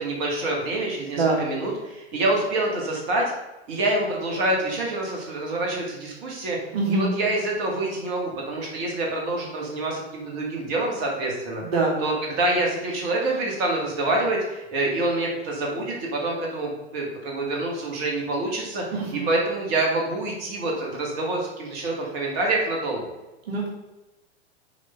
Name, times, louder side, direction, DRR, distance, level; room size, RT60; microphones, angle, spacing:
voice 1, 0.0-3.3 3.7-6.6 6.9-11.6 12.0-18.8 19.1-23.0, right 2 dB, 40° right, -2 dB, 2.2 m, -26 dB
voice 2, 6.7-7.1 11.7-11.9 18.9-19.3 23.5-23.7, right 3 dB, 60° right, -2 dB, 2.1 m, -23 dB
7.4 x 4.0 x 5.6 m, 1.0 s
figure-of-eight pair, 95°, 33 cm